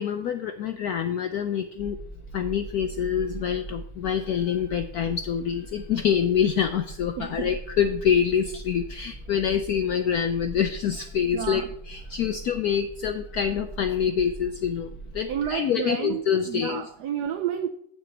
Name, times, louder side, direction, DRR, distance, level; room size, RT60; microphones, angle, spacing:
voice 1, 0.0-2.0 2.3-14.9 15.1-16.8, left 8 dB, 80° left, 0.8 m, -26 dB
sound 1, 1.8-15.5, right 2 dB, 25° left, 2.5 m, -41 dB
voice 2, 7.2-7.5 11.3-11.7 15.3-17.7, right 9 dB, 75° right, 0.9 m, -30 dB
7.1 x 6.1 x 7.6 m
omnidirectional pair, 2.2 m